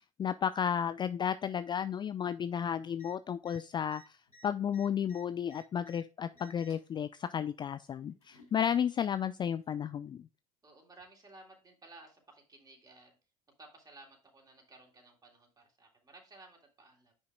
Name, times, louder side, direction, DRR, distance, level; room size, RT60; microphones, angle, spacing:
voice 1, 0.0-4.2 4.4-10.2, left 8 dB, 25° left, 13 dB, 0.4 m, -33 dB
sound 1, 2.9-3.1 3.4-3.6 3.9-6.0 6.3-6.9 7.9-8.5 9.6-9.7, right 1 dB, 85° left, 3.2 m, -59 dB
voice 2, 10.6-13.2 13.6-17.1, right 2 dB, 20° right, 1 dB, 3.3 m, -56 dB
10.0 x 5.7 x 2.4 m, 0.32 s
figure-of-eight pair, 70°, 18 cm